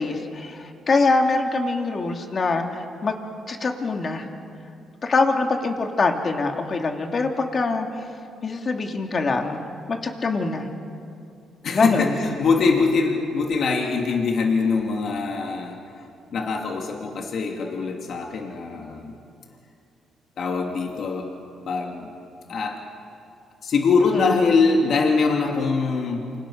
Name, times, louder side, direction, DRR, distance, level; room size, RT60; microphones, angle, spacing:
voice 1, 0.0-4.2 5.0-7.9 8.4-9.6 9.9-10.7 11.7-12.1 24.1-24.4, left 3 dB, 40° left, 3 dB, 2.9 m, -24 dB
voice 2, 11.6-15.8 16.3-19.1 20.4-21.3 21.7-22.1 22.5-22.8 23.6-26.2, left 4 dB, 60° left, 1 dB, 2.8 m, -23 dB
28.5 x 26.5 x 6.5 m, 2.5 s
cardioid pair, 90°, 0 cm